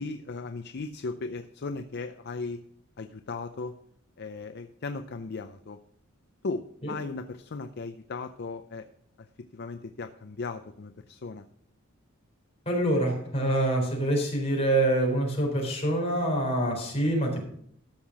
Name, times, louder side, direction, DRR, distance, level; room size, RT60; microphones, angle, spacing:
voice 1, 0.0-2.6 3.0-3.8 4.2-5.8 6.4-8.8 9.2-9.3 9.5-11.4, left 3 dB, 55° left, 8 dB, 0.5 m, -37 dB
voice 2, 12.7-17.4, right 1 dB, 30° left, -1 dB, 4.0 m, -26 dB
13.5 x 5.7 x 5.9 m, 0.69 s
head